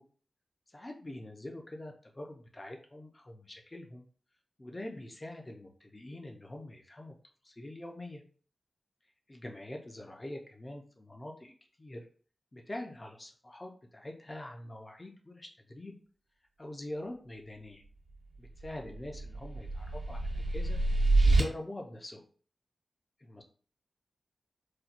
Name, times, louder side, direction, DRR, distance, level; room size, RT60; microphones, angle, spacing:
voice 1, 0.7-4.1 4.6-7.1 7.4-8.2 9.3-11.5 11.8-12.0 12.5-16.0 16.6-17.8 18.6-20.8 21.2-22.2 23.2-23.4, left 1 dB, 20° left, 2 dB, 0.5 m, -44 dB
sound 1, 18.6-21.4, right 2 dB, 70° right, 1.1 m, -27 dB
4.2 x 2.2 x 2.4 m, 0.42 s
wide cardioid pair, 140°, 0 cm